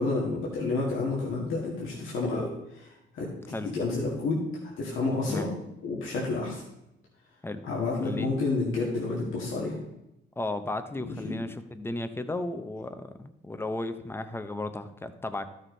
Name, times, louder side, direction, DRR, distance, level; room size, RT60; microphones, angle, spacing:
voice 1, 0.0-5.5 5.8-6.6 7.6-9.8 11.0-11.4, left 3 dB, 80° left, -4 dB, 2.2 m, -30 dB
voice 2, 8.0-8.4 10.4-13.1 13.4-15.5, left 2 dB, 10° left, 10 dB, 0.8 m, -34 dB
13.0 x 6.4 x 4.0 m, 0.88 s
cardioid pair, 90°, 20 cm